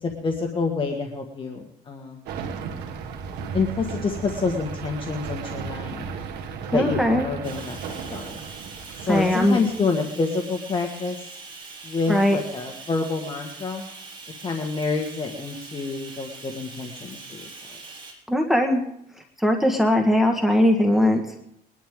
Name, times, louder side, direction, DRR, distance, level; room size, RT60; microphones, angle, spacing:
voice 1, 0.0-2.3 3.5-6.1 6.7-8.4 9.0-11.3 11.8-13.9 14.4-17.5, left 4 dB, 30° left, 1 dB, 1.7 m, -28 dB
sound 1, 2.3-9.8, right 6 dB, 80° right, 1.9 m, -35 dB
voice 2, 6.7-7.3 9.1-9.6 12.1-12.4 18.3-18.8 19.4-21.4, left 1 dB, ahead, 1 dB, 1.6 m, -20 dB
Bathtub (filling or washing), 7.4-18.1, right 4 dB, 30° right, 6.4 m, -42 dB
21.5 x 11.5 x 3.8 m, 0.74 s
cardioid pair, 110°, 17 cm